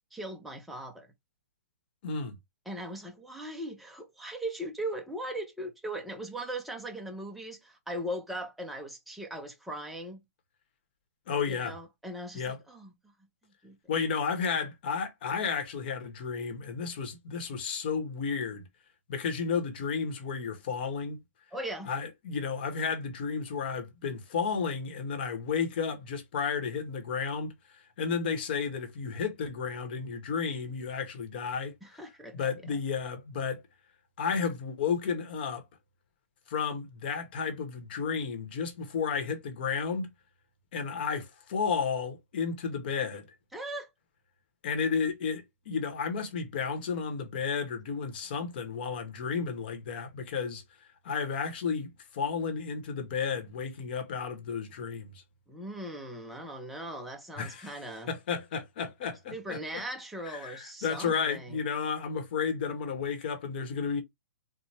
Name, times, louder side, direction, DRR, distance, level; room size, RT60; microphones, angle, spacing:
voice 1, 0.1-1.1 2.7-10.2 11.5-12.9 13.6-13.8 21.5-21.9 31.8-32.5 43.5-43.9 55.5-58.1 59.3-61.6, right 1 dB, ahead, 0.4 m, -39 dB
voice 2, 2.0-2.4 11.3-11.8 12.3-12.6 13.9-18.7 19.1-21.2 21.8-31.7 32.3-33.6 34.2-35.6 36.5-40.1 40.7-43.3 44.6-50.6 51.0-55.2 57.4-59.6 60.3-64.0, left 6 dB, 35° left, 0.9 m, -32 dB
4.1 x 2.0 x 3.2 m
hypercardioid pair, 170°, 8 cm